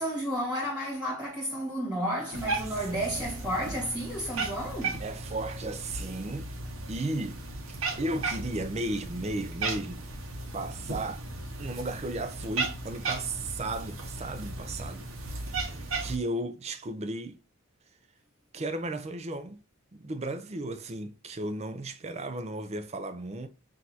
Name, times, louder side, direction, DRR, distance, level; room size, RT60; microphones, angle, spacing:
voice 1, 0.0-5.0, equal, 5° right, 1.7 m, -32 dB
Cat, 2.3-16.2, right 3 dB, 65° right, 0.9 m, -36 dB
voice 2, 5.0-6.5 6.9-7.4 7.7-10.0 10.5-11.2 11.6-15.0 15.4-17.4 18.5-19.6 19.9-23.5, right 2 dB, 30° right, 0.4 m, -35 dB
6.0 x 2.6 x 2.7 m
head